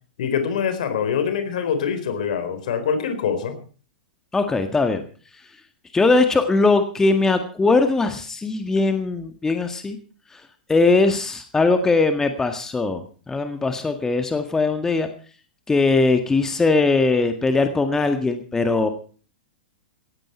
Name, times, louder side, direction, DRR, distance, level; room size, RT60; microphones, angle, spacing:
voice 1, 0.2-3.6, left 7 dB, 60° left, 10 dB, 4.1 m, -24 dB
voice 2, 4.3-5.0 5.9-10.0 10.3-10.4 10.7-13.0 13.3-15.1 15.7-18.9, left 3 dB, 10° left, 8 dB, 1.8 m, -20 dB
18.0 x 15.0 x 4.5 m, 0.40 s
figure-of-eight pair, 105°, 5 cm